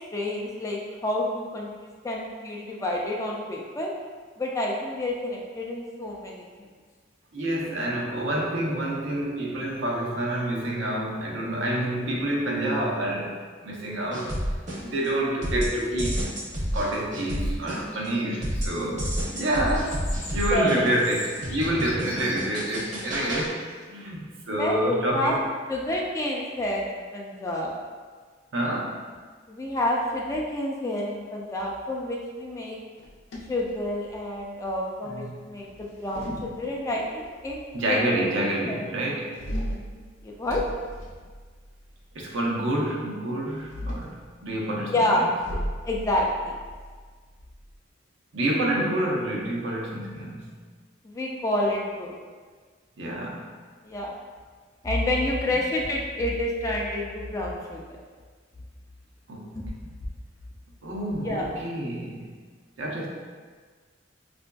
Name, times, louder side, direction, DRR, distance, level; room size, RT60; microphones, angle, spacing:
voice 1, 0.1-3.9 4.4-6.7 20.5-21.0 24.5-25.4 25.7-27.7 29.5-32.8 33.5-37.6 37.9-38.2 38.6-39.0 40.2-40.6 44.9-45.3 45.8-46.6 51.0-52.2 53.8-54.1 54.8-58.0 59.5-59.7 61.2-61.5, left 1 dB, 15° left, -2 dB, 0.3 m, -28 dB
voice 2, 7.3-14.4 14.8-16.3 16.7-23.6 23.9-25.4 28.5-29.1 35.1-35.5 36.3-36.4 37.7-39.3 42.1-45.3 48.3-50.5 53.0-53.5 59.3-59.6 60.8-62.3 62.8-63.1, right 1 dB, 80° right, -2 dB, 0.6 m, -28 dB
sound 1, 14.1-15.1 15.4-18.1 18.4-23.5, equal, 40° right, 0.7 m, -30 dB
sound 2, 17.4-18.8 19.7-23.8, left 1 dB, 30° left, 0.7 m, -41 dB
sound 3, 33.0-34.4 35.7-37.1 39.3-41.9 43.5-44.2 45.4-47.7, equal, 80° left, 0.5 m, -36 dB
4.5 x 2.5 x 2.2 m, 1.5 s
head